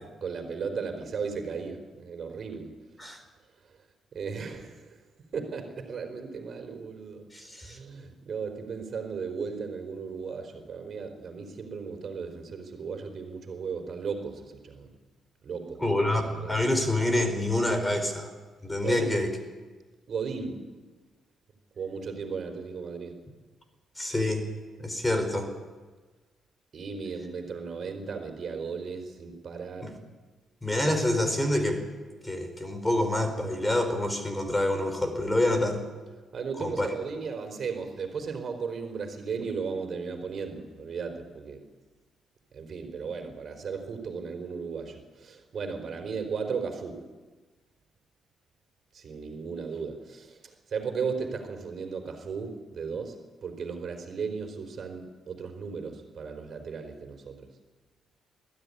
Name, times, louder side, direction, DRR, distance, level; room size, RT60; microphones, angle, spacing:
voice 1, 0.2-2.7 3.6-3.8 4.1-5.0 5.3-7.2 7.6-14.9 15.4-16.6 18.8-19.1 20.1-20.7 21.8-23.2 26.7-30.0 36.3-41.6 42.5-47.0 48.9-53.2 53.4-57.5, right 5 dB, 50° right, 5 dB, 4.2 m, -36 dB
voice 2, 7.3-7.8 15.8-18.3 18.6-19.3 24.0-24.5 24.8-25.5 29.8-29.9 30.6-31.8 32.2-35.8 36.6-36.9, left 1 dB, 15° left, 7 dB, 4.2 m, -27 dB
21.5 x 14.0 x 9.8 m, 1.3 s
cardioid pair, 90°, 0 cm